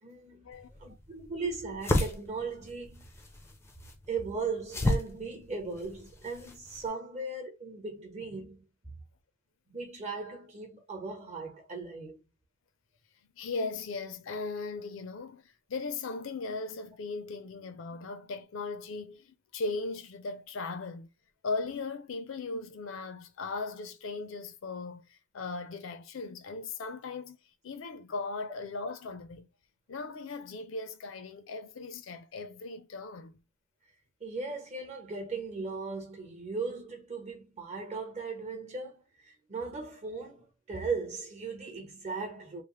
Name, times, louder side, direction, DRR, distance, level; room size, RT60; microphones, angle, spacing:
voice 1, 0.0-0.5 0.8-3.1 4.1-8.6 9.7-12.2 34.2-42.6, right 4 dB, 35° right, 1.0 m, -38 dB
sound 1, 0.5-6.9, left 1 dB, 10° left, 0.4 m, -34 dB
voice 2, 13.4-21.1 21.4-27.4 27.6-29.5 29.9-33.3, left 3 dB, 65° left, 0.5 m, -38 dB
3.1 x 2.0 x 3.0 m
head